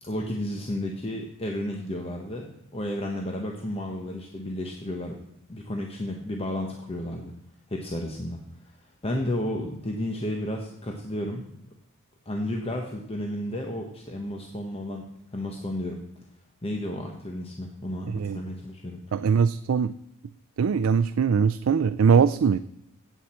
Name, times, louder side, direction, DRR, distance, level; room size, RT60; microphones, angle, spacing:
voice 1, 0.0-5.2 5.5-7.3 7.7-11.6 12.3-15.0 15.3-16.0 16.6-19.0, left 1 dB, 30° left, 2 dB, 1.1 m, -32 dB
voice 2, 18.1-18.4 19.1-19.9 20.6-22.6, right 6 dB, 70° right, 12 dB, 0.4 m, -21 dB
16.5 x 8.1 x 4.4 m, 0.80 s
head